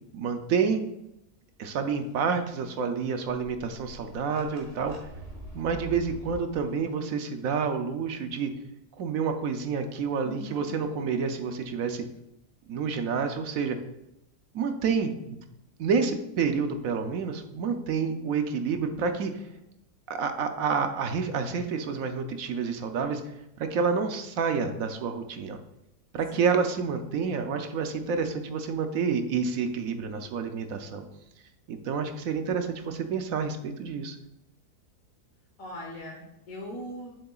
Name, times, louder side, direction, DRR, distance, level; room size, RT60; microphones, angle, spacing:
voice 1, 0.1-0.8 1.6-4.9 5.5-8.5 9.0-12.0 12.7-13.8 14.5-15.4 15.8-19.4 20.1-25.6 26.1-31.0 31.7-34.2, right 5 dB, 65° right, 7 dB, 1.0 m, -29 dB
sound 1, 3.5-6.6, right 1 dB, 50° right, 2.0 m, -44 dB
voice 2, 10.2-10.7 26.3-26.5 35.6-37.2, equal, 60° left, -2 dB, 1.5 m, -40 dB
7.5 x 6.7 x 2.4 m, 0.86 s
omnidirectional pair, 1.7 m